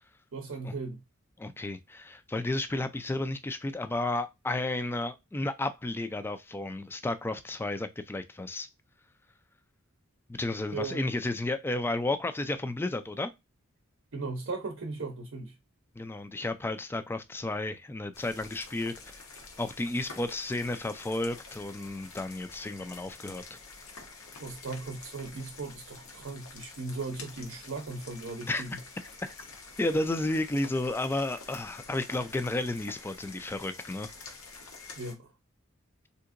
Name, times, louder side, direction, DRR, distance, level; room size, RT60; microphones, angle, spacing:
voice 1, 0.3-1.0 10.7-11.1 14.1-15.5 24.4-28.8 35.0-35.3, right 3 dB, 65° right, 0.7 m, -37 dB
voice 2, 1.4-8.7 10.3-13.3 16.0-19.2 19.6-23.6 28.5-28.6 29.8-34.1, left 2 dB, 10° left, 0.3 m, -32 dB
sound 1, 18.1-35.1, left 4 dB, 90° left, 0.9 m, -48 dB
3.5 x 2.8 x 2.4 m
head